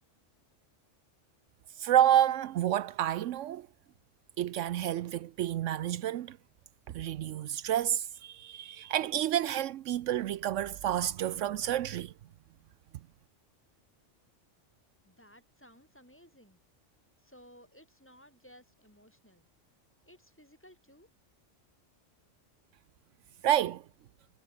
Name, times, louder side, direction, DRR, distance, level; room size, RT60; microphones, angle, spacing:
voice 1, 1.8-3.7 4.4-6.4 6.9-12.1 23.4-23.8, right 11 dB, 80° right, 0.9 m, -29 dB
voice 2, 15.0-16.6 17.2-19.5 20.1-21.1, equal, 10° left, 4.7 m, -58 dB
omnidirectional pair, 1.3 m